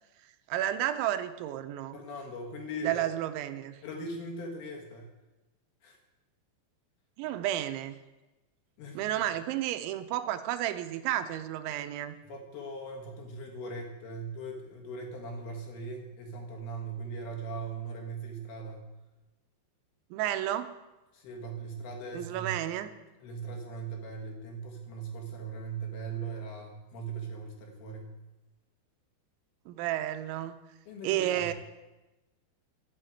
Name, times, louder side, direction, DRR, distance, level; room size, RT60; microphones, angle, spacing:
voice 1, 0.5-2.0 2.9-3.8 7.2-8.0 9.0-12.2 20.1-20.7 22.1-22.9 29.7-30.5 31.0-31.5, right 12 dB, 85° right, 10 dB, 3.1 m, -31 dB
voice 2, 1.9-3.0 3.8-5.1 5.8-6.0 8.8-9.1 12.2-18.9 21.1-22.6 23.2-28.2 30.9-31.5, right 3 dB, 65° left, 1 dB, 3.3 m, -39 dB
13.0 x 5.8 x 9.0 m, 1.1 s
omnidirectional pair, 5.2 m